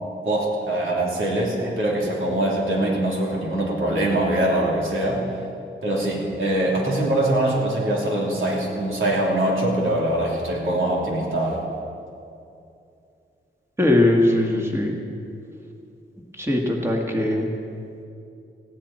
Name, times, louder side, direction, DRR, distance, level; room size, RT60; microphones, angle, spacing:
voice 1, 0.3-5.2 5.8-11.6, right 1 dB, 80° right, -3 dB, 3.5 m, -23 dB
voice 2, 13.8-15.0 16.4-17.5, left 1 dB, 15° right, 0 dB, 1.8 m, -20 dB
19.5 x 16.0 x 4.3 m, 2.6 s
wide cardioid pair, 180°, 20 cm